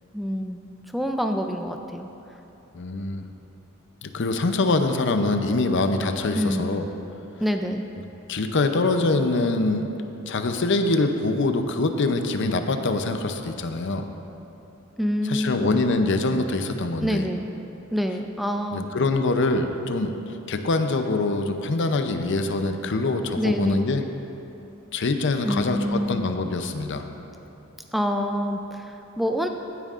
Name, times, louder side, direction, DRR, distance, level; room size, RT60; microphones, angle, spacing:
voice 1, 0.1-0.6 0.9-2.1 6.4-6.7 7.4-7.9 15.0-15.8 17.0-17.5 17.9-18.9 23.4-23.8 25.4-26.2 27.9-29.5, equal, ahead, 4 dB, 0.3 m, -26 dB
voice 2, 2.7-3.2 4.0-6.9 8.3-9.9 10.3-14.0 15.3-17.3 18.7-20.1 20.5-24.0 24.9-27.1, left 2 dB, 55° left, 7 dB, 0.6 m, -24 dB
15.5 x 9.1 x 2.5 m, 3.0 s
head